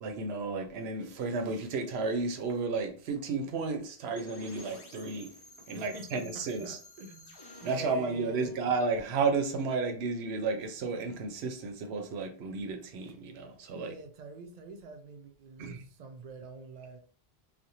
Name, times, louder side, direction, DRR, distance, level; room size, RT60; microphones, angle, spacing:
voice 1, 0.0-5.3 5.7-6.8 7.6-13.9 15.6-15.8, right 4 dB, 80° right, 0.8 m, -32 dB
sound 1, 4.2-10.0, left 2 dB, 35° left, 0.4 m, -52 dB
voice 2, 5.7-8.5 13.7-17.0, right 3 dB, 55° right, 0.5 m, -46 dB
2.5 x 2.1 x 2.8 m
omnidirectional pair, 1.1 m